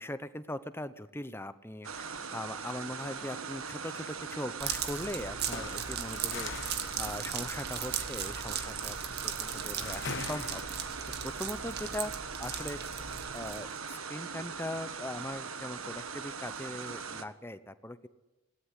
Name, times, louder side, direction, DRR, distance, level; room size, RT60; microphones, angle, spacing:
voice 1, 0.0-6.5 7.0-9.0 9.2-10.6 11.2-12.1 12.4-12.8 13.3-18.1, left 1 dB, 10° left, 13 dB, 0.9 m, -40 dB
sound 1, 1.8-17.2, right 5 dB, 75° right, 1.7 m, -40 dB
sound 2, 4.6-13.8, right 8 dB, 45° right, 2.1 m, -38 dB
sound 3, 5.3-11.2, left 5 dB, 55° left, 1.0 m, -44 dB
21.0 x 18.0 x 9.8 m, 1.1 s
head